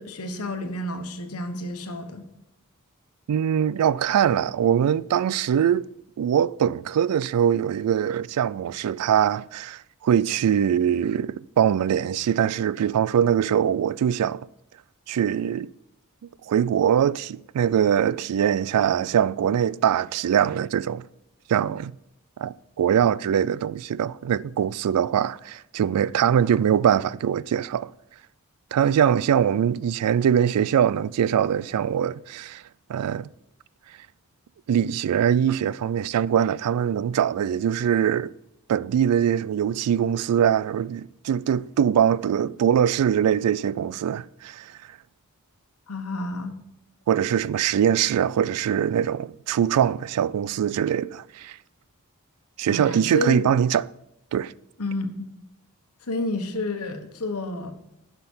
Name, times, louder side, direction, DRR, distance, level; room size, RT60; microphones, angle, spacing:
voice 1, 0.0-2.2 45.9-46.6 52.7-53.4 54.8-55.3 56.0-57.7, left 2 dB, 80° left, 1.2 m, -30 dB
voice 2, 3.3-5.9 6.2-14.5 15.1-15.7 16.5-21.0 21.5-21.9 22.4-27.9 28.7-32.6 32.9-33.3 34.7-38.3 38.7-44.7 47.1-51.6 52.6-53.9 54.3-54.5, right 9 dB, 90° right, 0.3 m, -22 dB
11.0 x 5.9 x 5.5 m
head